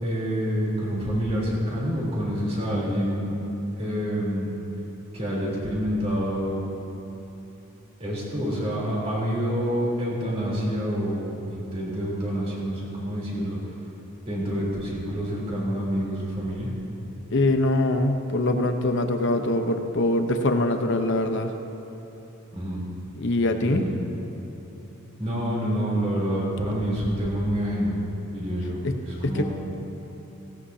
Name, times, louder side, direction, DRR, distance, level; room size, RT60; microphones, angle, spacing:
voice 1, 0.0-3.4 3.8-4.5 5.1-6.7 8.0-13.6 14.3-16.7 22.5-22.8 23.6-23.9 25.2-27.9 28.3-29.4, equal, 30° right, -5 dB, 3.5 m, -27 dB
voice 2, 17.3-21.5 23.2-23.8 28.8-29.4, left 1 dB, 55° left, 5 dB, 0.9 m, -23 dB
17.5 x 17.0 x 2.8 m, 2.9 s
head